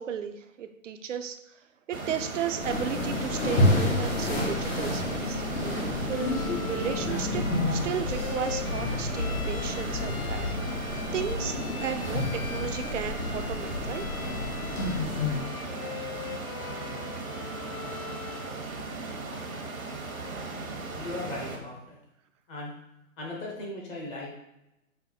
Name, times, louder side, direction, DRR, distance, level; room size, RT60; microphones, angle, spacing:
voice 1, 0.0-1.4 1.9-7.5 7.7-10.6 11.1-14.0, right 8 dB, 60° right, 8 dB, 0.6 m, -34 dB
sound 1, 1.9-21.6, right 3 dB, 80° right, 1.1 m, -37 dB
sound 2, 2.6-15.4, left 2 dB, 60° left, 1.5 m, -30 dB
Bowed string instrument, 6.0-18.6, left 9 dB, 85° left, 0.6 m, -42 dB
voice 2, 20.9-22.0 22.5-22.7 23.2-24.3, left 2 dB, 15° left, -3 dB, 0.8 m, -37 dB
5.5 x 2.2 x 4.2 m, 0.88 s
hypercardioid pair, 140°, 41 cm